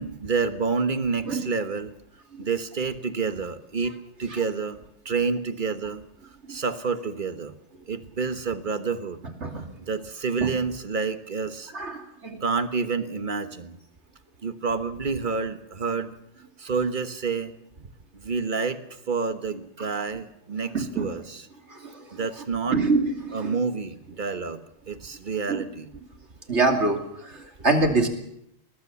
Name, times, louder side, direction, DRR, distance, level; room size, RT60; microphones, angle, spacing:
voice 1, 0.0-1.9 2.4-3.9 4.2-6.0 6.5-7.5 7.9-9.2 9.8-11.7 12.4-13.7 14.4-16.1 16.6-17.5 17.8-17.9 18.1-21.4 22.1-22.8 23.3-25.9, right 4 dB, 45° right, 10 dB, 1.4 m, -28 dB
voice 2, 11.7-12.4 20.7-21.1 21.7-22.2 22.7-23.6 25.5-25.6 26.5-28.1, right 3 dB, 80° right, 4 dB, 2.9 m, -25 dB
21.0 x 19.5 x 7.0 m, 0.80 s
omnidirectional pair, 1.2 m